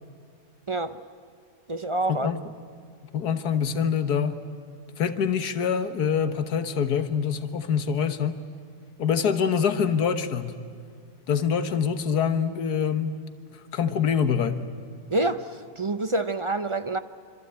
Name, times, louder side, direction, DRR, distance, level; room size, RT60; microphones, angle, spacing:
voice 1, 0.7-1.0 1.7-2.3 15.1-17.0, right 2 dB, 35° right, 0.5 m, -27 dB
voice 2, 2.1-2.4 3.1-4.4 5.0-8.4 9.0-10.6 11.3-13.2 13.7-14.7, left 7 dB, 90° left, 1.7 m, -25 dB
26.0 x 25.0 x 8.8 m
omnidirectional pair, 1.6 m